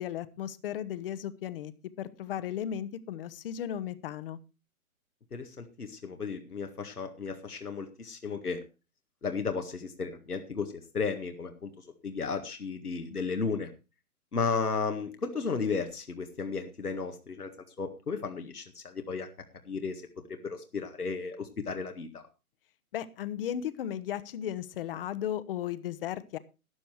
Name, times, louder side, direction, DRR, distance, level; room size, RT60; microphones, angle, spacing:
voice 1, 0.0-1.7 2.0-4.4 22.9-26.4, left 10 dB, 40° left, 16 dB, 1.0 m, -35 dB
voice 2, 5.3-8.6 9.2-13.7 14.3-17.5 17.8-19.3 19.7-20.0 20.3-22.2, left 5 dB, 90° left, 5 dB, 1.9 m, -34 dB
13.0 x 9.9 x 4.6 m, 0.30 s
figure-of-eight pair, 135°, 44 cm